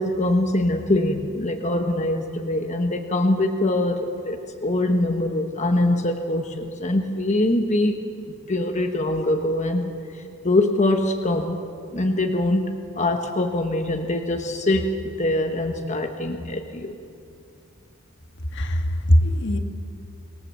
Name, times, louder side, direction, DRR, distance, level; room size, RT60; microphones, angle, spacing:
voice 1, 0.0-8.0 8.5-11.6 11.9-16.9, left 1 dB, 35° left, 3 dB, 1.2 m, -23 dB
voice 2, 18.5-19.6, equal, 60° left, 5 dB, 1.7 m, -20 dB
26.0 x 18.5 x 7.6 m, 2.5 s
head